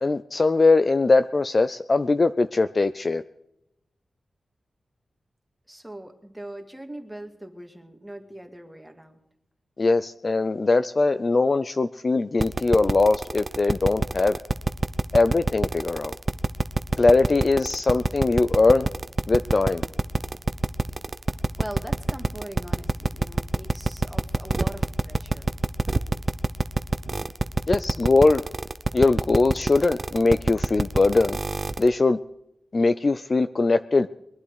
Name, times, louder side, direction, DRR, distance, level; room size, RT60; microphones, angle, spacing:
voice 1, 0.0-3.2 9.8-14.4 15.1-16.1 17.0-18.9 19.3-19.8 27.7-28.4 28.9-31.4 31.8-32.2 32.7-34.1, left 3 dB, 35° left, 0.5 m, -21 dB
voice 2, 5.7-9.2 21.6-25.5, right 1 dB, 5° right, 2.1 m, -40 dB
sound 1, 12.4-31.9, right 3 dB, 30° right, 0.7 m, -25 dB
22.5 x 11.5 x 4.8 m
wide cardioid pair, 140°, 0 cm